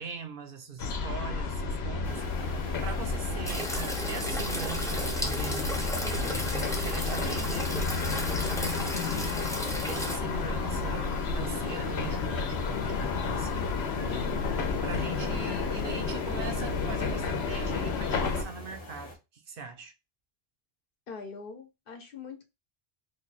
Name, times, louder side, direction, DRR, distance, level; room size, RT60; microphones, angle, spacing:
voice 1, 0.0-2.5 2.8-6.6 6.8-7.7 8.4-9.4 9.9-13.7 14.1-14.2 14.8-19.9, right 5 dB, 60° right, 0.8 m, -41 dB
sound 1, 0.8-18.4, left 4 dB, 85° left, 0.9 m, -31 dB
sound 2, 2.0-19.2, left 1 dB, 30° left, 0.9 m, -45 dB
sound 3, 3.5-10.2, equal, 5° left, 0.4 m, -34 dB
voice 2, 14.0-14.4 21.1-22.4, left 4 dB, 60° left, 0.9 m, -43 dB
3.2 x 2.3 x 4.0 m
omnidirectional pair, 1.1 m